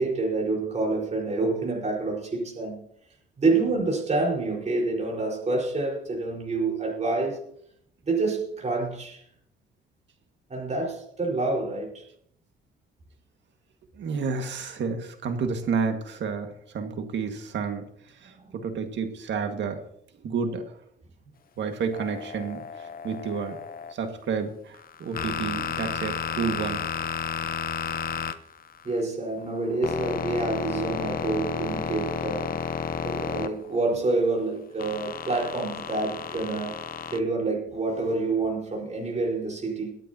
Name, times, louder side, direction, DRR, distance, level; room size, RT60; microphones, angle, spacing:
voice 1, 0.0-2.8 3.4-7.4 8.1-9.2 10.5-12.0 18.3-18.5 28.8-32.6 33.0-36.8 37.1-39.9, right 3 dB, 35° right, -2 dB, 4.7 m, -27 dB
voice 2, 13.9-17.8 18.2-19.8 20.2-20.7 21.6-23.6 23.9-26.9, right 5 dB, 65° right, 6 dB, 1.9 m, -30 dB
sound 1, 21.9-23.9 24.7-29.0 29.4-34.0 34.8-37.2, left 7 dB, 45° left, 0.8 m, -32 dB
23.0 x 9.0 x 2.9 m, 0.69 s
cardioid pair, 90°, 20 cm